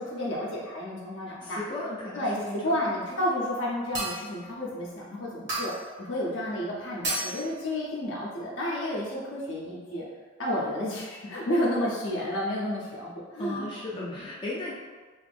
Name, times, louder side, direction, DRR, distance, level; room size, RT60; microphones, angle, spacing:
voice 1, 0.0-1.6 2.1-10.0 10.4-14.2, left 1 dB, 65° left, -5 dB, 0.6 m, -31 dB
voice 2, 1.4-2.9 13.4-14.7, left 2 dB, 25° left, -5 dB, 0.4 m, -36 dB
sound 1, 3.9-4.4 5.5-5.9 7.0-7.5, right 2 dB, 60° right, 1.2 m, -31 dB
3.1 x 2.5 x 3.4 m, 1.4 s
head